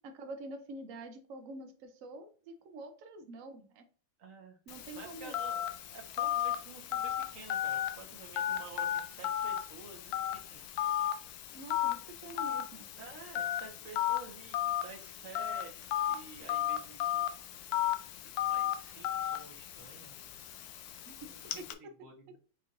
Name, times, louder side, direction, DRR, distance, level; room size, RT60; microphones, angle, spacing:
voice 1, 0.0-3.9 4.7-5.3 11.5-12.9 21.1-21.3 21.6-21.7, right 2 dB, 85° right, 7 dB, 0.7 m, -46 dB
voice 2, 4.2-4.6 4.9-5.6 5.9-10.6 12.9-15.7 16.1-17.3 17.9-18.1 18.4-20.3 21.2-22.4, right 4 dB, 45° right, 1 dB, 1.3 m, -51 dB
Telephone, 4.7-21.7, left 12 dB, 85° left, 0.8 m, -35 dB
5.3 x 3.1 x 2.5 m, 0.40 s
omnidirectional pair, 2.2 m